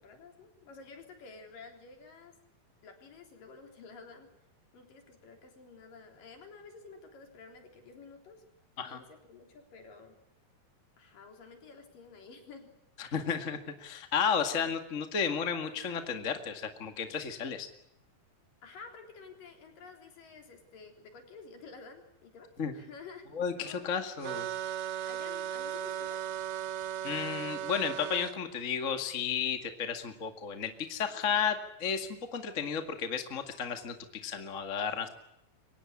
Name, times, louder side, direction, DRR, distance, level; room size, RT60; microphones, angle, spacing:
voice 1, 0.0-2.4 2.8-4.3 4.7-8.4 8.8-10.2 11.0-12.7 18.6-23.3 23.5-24.1 25.1-26.2 31.1-31.5, left 4 dB, 60° left, 4 dB, 5.2 m, -51 dB
voice 2, 13.0-17.7 22.6-22.7 23.3-24.5 27.0-34.0 34.2-35.1, left 7 dB, 30° left, 7 dB, 1.5 m, -33 dB
sound 1, 24.2-28.4, right 10 dB, 85° right, 3.0 m, -36 dB
24.5 x 18.5 x 9.9 m, 0.82 s
omnidirectional pair, 4.4 m